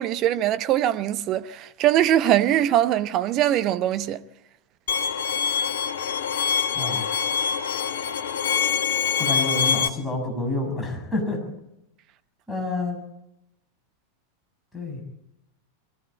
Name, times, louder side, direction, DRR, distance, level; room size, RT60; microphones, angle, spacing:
voice 1, 0.0-4.2, right 12 dB, 35° right, 0.8 m, -22 dB
Bowed string instrument, 4.9-9.9, left 7 dB, 60° left, 1.3 m, -24 dB
voice 2, 6.7-7.4 9.2-11.4 12.5-13.0 14.7-15.0, left 2 dB, 5° left, 6.9 m, -28 dB
23.5 x 15.0 x 8.6 m
figure-of-eight pair, 90°, 0 cm